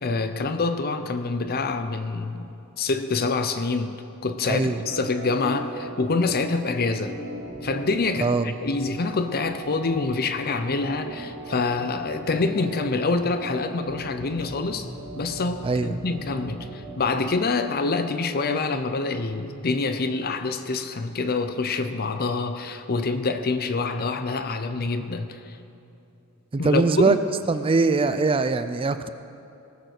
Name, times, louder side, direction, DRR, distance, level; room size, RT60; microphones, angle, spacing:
voice 1, 0.0-2.5 2.8-7.2 7.6-14.9 15.1-25.6 26.6-27.2, left 3 dB, 45° left, 9 dB, 0.6 m, -26 dB
voice 2, 4.5-4.8 8.2-8.5 15.6-16.0 26.5-27.2 27.5-29.1, right 3 dB, 25° right, 11 dB, 0.4 m, -22 dB
Organ, 4.8-16.9, right 1 dB, 80° right, 3.5 m, -38 dB
18.5 x 6.8 x 6.5 m, 2.7 s
head